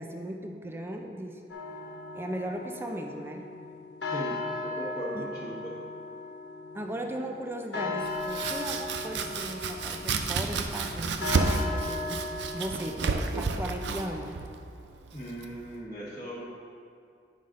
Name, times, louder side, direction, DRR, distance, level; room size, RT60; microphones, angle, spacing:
voice 1, 0.0-1.4 2.1-3.5 5.1-5.3 6.7-12.2 12.5-14.3, right 1 dB, 15° right, 3 dB, 0.5 m, -37 dB
sound 1, 1.5-12.8, left 3 dB, 90° left, 0.9 m, -37 dB
voice 2, 4.1-5.6 15.1-16.4, equal, 25° left, -11 dB, 1.2 m, -38 dB
Domestic sounds home sounds, 8.0-15.8, right 4 dB, 80° right, 0.5 m, -32 dB
9.3 x 5.6 x 3.8 m, 2.4 s
head